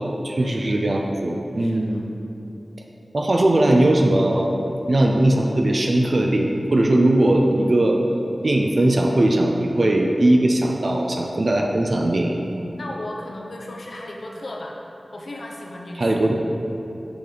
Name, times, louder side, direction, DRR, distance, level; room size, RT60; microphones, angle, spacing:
voice 1, 0.0-2.1 3.1-4.6 4.9-8.0 8.4-12.3 16.0-16.3, right 1 dB, 60° right, 1 dB, 0.5 m, -19 dB
voice 2, 1.6-2.0 9.8-9.9 12.8-14.8 15.1-16.3, left 1 dB, 80° left, -1 dB, 0.8 m, -35 dB
6.8 x 5.0 x 3.9 m, 2.9 s
wide cardioid pair, 50°, 0 cm